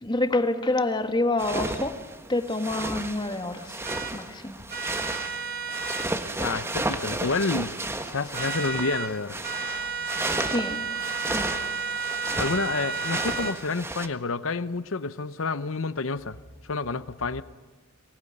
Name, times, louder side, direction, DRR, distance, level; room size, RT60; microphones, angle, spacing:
voice 1, 0.0-2.0 2.3-3.8 4.1-4.6 10.5-10.8 11.2-11.5, left 2 dB, 20° left, 1.5 m, -27 dB
sound 1, 1.4-14.1, right 2 dB, 10° right, 1.3 m, -33 dB
sound 2, 3.8-4.1 4.7-6.1 8.3-9.1 9.4-13.6, right 5 dB, 45° right, 2.0 m, -32 dB
voice 2, 6.4-7.7 8.0-9.4 12.4-16.4 16.6-17.4, left 3 dB, 70° left, 0.8 m, -29 dB
23.5 x 19.5 x 9.9 m
head